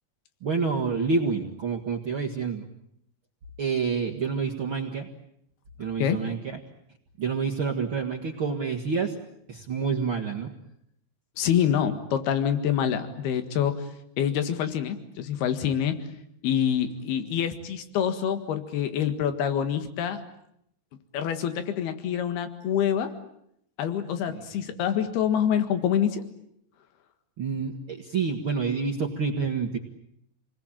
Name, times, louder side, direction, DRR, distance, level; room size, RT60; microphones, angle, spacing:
voice 1, 0.4-2.7 3.6-5.1 5.8-6.6 7.2-9.2 9.5-10.5 24.3-24.5 27.4-29.8, right 5 dB, 45° right, 0 dB, 1.8 m, -28 dB
voice 2, 11.4-13.9 14.2-16.1 16.4-20.2 21.1-23.1 23.8-26.2, left 9 dB, 75° left, 9 dB, 3.7 m, -26 dB
29.0 x 20.5 x 8.9 m, 0.74 s
omnidirectional pair, 4.6 m